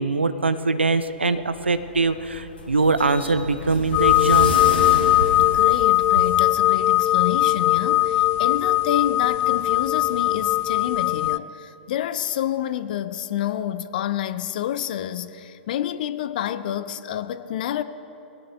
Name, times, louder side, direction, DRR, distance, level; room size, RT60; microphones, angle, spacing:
voice 1, 0.0-4.6, right 3 dB, 80° right, 0.8 m, -22 dB
sound 1, 1.3-6.4, left 2 dB, 70° left, 3.6 m, -31 dB
sound 2, 3.9-11.4, left 15 dB, 30° left, 0.3 m, -19 dB
voice 2, 5.4-17.8, left 11 dB, 50° left, 0.7 m, -28 dB
21.5 x 17.5 x 3.4 m
figure-of-eight pair, 110°, 6 cm